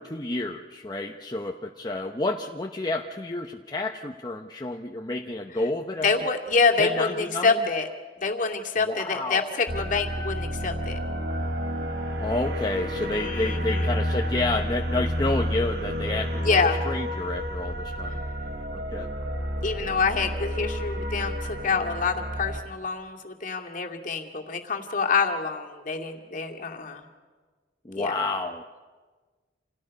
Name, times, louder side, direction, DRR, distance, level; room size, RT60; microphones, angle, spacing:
voice 1, 0.0-6.1 6.8-7.6 8.9-9.6 12.2-16.6 16.8-18.2 18.7-19.1 27.8-28.6, left 2 dB, 20° left, 2 dB, 0.9 m, -30 dB
voice 2, 6.0-7.9 8.2-11.0 13.1-13.9 16.4-16.8 19.6-27.1 27.9-28.2, left 4 dB, 45° left, 2 dB, 2.4 m, -26 dB
sound 1, 9.7-22.6, equal, 60° right, 2.0 m, -30 dB
29.5 x 28.0 x 5.4 m, 1.4 s
head